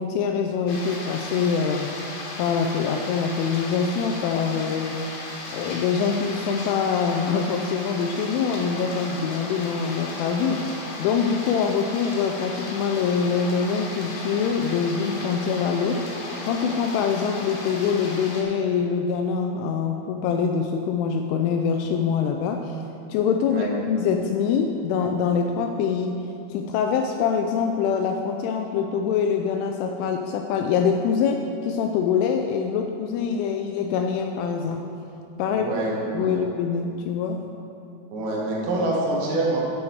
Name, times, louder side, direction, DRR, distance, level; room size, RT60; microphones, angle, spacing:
voice 1, 0.0-2.1 2.4-5.0 5.5-16.0 16.4-22.8 23.1-34.8 35.4-35.7 36.1-37.5, left 6 dB, 85° left, 4 dB, 2.8 m, -24 dB
sound 1, 0.7-18.4, left 2 dB, 65° left, 3.2 m, -36 dB
voice 2, 35.5-36.4 38.1-39.6, right 2 dB, 80° right, -3 dB, 4.3 m, -26 dB
10.5 x 9.2 x 4.7 m, 2.6 s
omnidirectional pair, 5.9 m